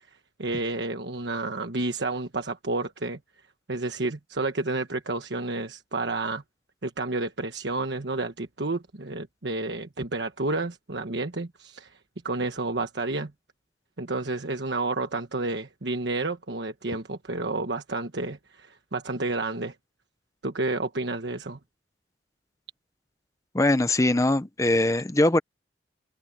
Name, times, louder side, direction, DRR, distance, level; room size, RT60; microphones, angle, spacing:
voice 1, 0.4-3.2 3.7-6.4 6.8-12.0 12.2-13.3 14.0-19.7 20.4-21.6, right 2 dB, 75° right, 1.3 m, -30 dB
voice 2, 23.5-25.4, left 1 dB, 15° left, 0.7 m, -22 dB
head